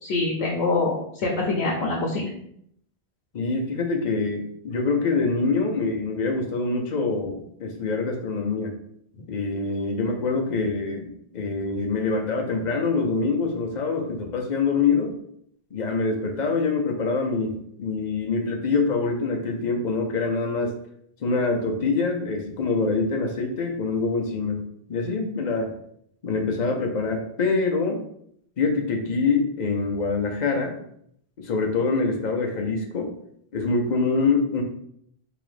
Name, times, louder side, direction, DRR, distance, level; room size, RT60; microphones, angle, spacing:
voice 1, 0.0-2.3, left 3 dB, 85° left, -2 dB, 1.0 m, -25 dB
voice 2, 3.3-8.7 9.3-15.1 15.7-20.7 21.2-24.6 24.9-25.7 26.2-28.0 28.6-30.7 31.4-33.1 33.5-34.6, left 4 dB, 50° left, 1 dB, 0.8 m, -25 dB
3.6 x 3.0 x 3.2 m, 0.69 s
omnidirectional pair, 1.1 m